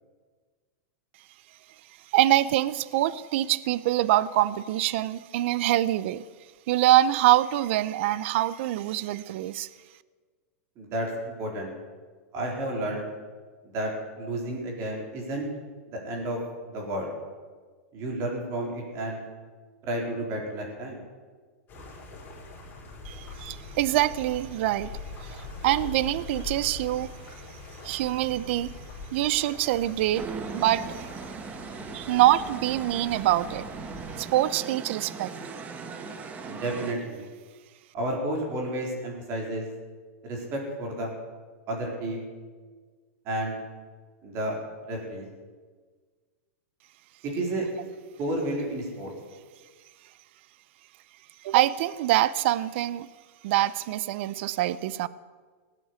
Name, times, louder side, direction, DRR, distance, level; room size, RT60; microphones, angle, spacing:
voice 1, 2.1-6.2 6.7-9.7 23.1-24.9 25.2-27.1 27.8-28.7 29.1-31.1 31.9-33.6 34.2-35.3 51.4-53.1 53.4-55.1, right 14 dB, 55° right, 18 dB, 0.6 m, -25 dB
voice 2, 10.8-11.7 12.3-13.0 13.6-13.9 14.2-15.5 15.9-16.4 16.7-17.1 17.9-19.2 19.8-21.0 36.5-37.2 37.9-39.6 40.2-41.1 41.7-42.2 43.3-43.6 44.2-44.6 44.9-45.3 47.2-47.7 48.2-49.1, right 1 dB, 35° right, 0 dB, 4.1 m, -31 dB
sound 1, 21.7-34.2, left 3 dB, 25° left, 4.6 m, -42 dB
sound 2, 30.1-36.9, right 4 dB, 20° right, 1.3 m, -39 dB
17.0 x 9.3 x 8.2 m, 1.5 s
hypercardioid pair, 140°, 8 cm